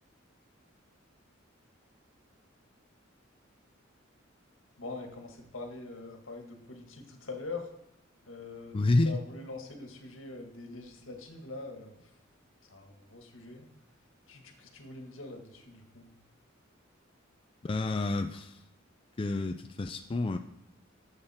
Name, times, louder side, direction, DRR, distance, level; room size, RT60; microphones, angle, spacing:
voice 1, 4.8-7.7 8.3-12.0 12.7-13.7 14.3-16.1, left 3 dB, 80° left, 3 dB, 1.8 m, -43 dB
voice 2, 8.7-9.2 17.6-18.6 19.2-20.4, left 2 dB, 25° left, 6 dB, 0.4 m, -29 dB
11.5 x 7.4 x 4.4 m, 0.85 s
head